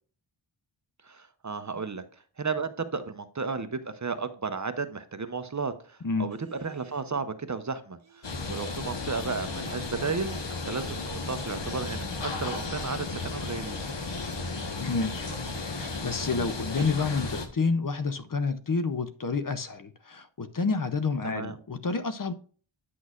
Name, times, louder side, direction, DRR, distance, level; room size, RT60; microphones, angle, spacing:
voice 1, 1.0-2.0 2.4-8.0 8.5-13.8 21.2-21.6, right 4 dB, 35° right, 0.7 m, -33 dB
sound 1, 6.3-7.1 8.0-8.8 9.1-10.2 10.6-11.3 12.0-13.1 13.9-14.2 14.9-15.6 16.7-17.1, right 5 dB, 75° right, 1.0 m, -51 dB
sound 2, 8.2-17.5, left 3 dB, 60° left, 1.3 m, -34 dB
voice 2, 14.8-15.3 15.6-22.3, left 4 dB, 45° left, 0.7 m, -29 dB
9.3 x 6.2 x 2.4 m
wide cardioid pair, 85°, 48 cm